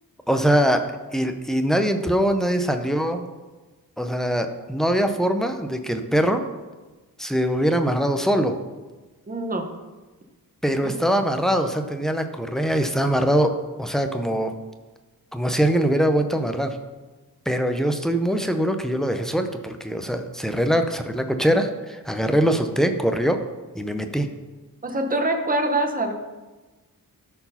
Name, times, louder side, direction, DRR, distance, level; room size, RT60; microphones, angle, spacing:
voice 1, 0.3-3.2 4.0-6.4 7.2-8.6 10.6-13.5 13.8-14.5 15.3-16.8 17.5-23.4 23.7-24.3, equal, ahead, 6 dB, 0.6 m, -22 dB
voice 2, 9.3-9.7 10.8-11.0 24.8-26.1, right 2 dB, 25° right, 5 dB, 0.9 m, -24 dB
13.0 x 4.7 x 5.6 m, 1.2 s
wide cardioid pair, 180°, 35 cm